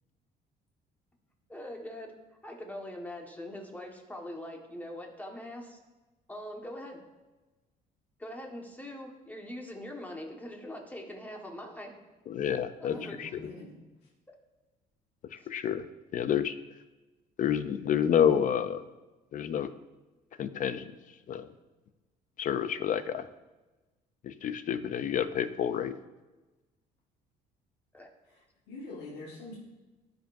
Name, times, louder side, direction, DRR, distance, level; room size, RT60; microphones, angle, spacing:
voice 1, 1.5-2.1 2.4-5.8 6.3-7.0 8.2-12.0 12.8-13.4 15.4-15.5 27.9-28.1, left 1 dB, 10° left, 1 dB, 1.5 m, -42 dB
voice 2, 12.3-13.4 15.3-15.8 16.1-16.5 17.4-18.8 19.3-19.7 20.4-20.9 21.3-21.5 22.4-23.3 24.2-25.9, left 9 dB, 50° left, 12 dB, 0.5 m, -29 dB
voice 3, 12.9-13.8 28.7-29.6, left 2 dB, 75° left, -5 dB, 1.7 m, -44 dB
15.0 x 5.2 x 2.7 m, 1.1 s
cardioid pair, 110°, 17 cm